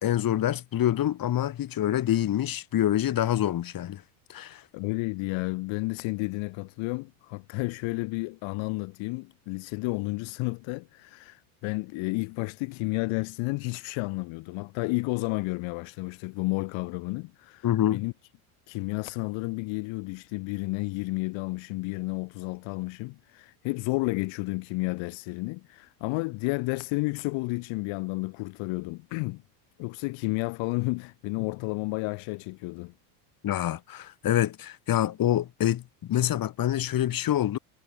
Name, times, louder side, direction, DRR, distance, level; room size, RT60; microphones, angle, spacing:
voice 1, 0.0-4.0 4.3-4.6 17.6-18.0 33.4-35.8 36.1-37.6, left 12 dB, 45° left, 3.8 m, -26 dB
voice 2, 4.7-18.1 18.7-29.4 29.8-32.9, left 25 dB, 70° left, 8.0 m, -31 dB
supercardioid pair, 110°, 49 cm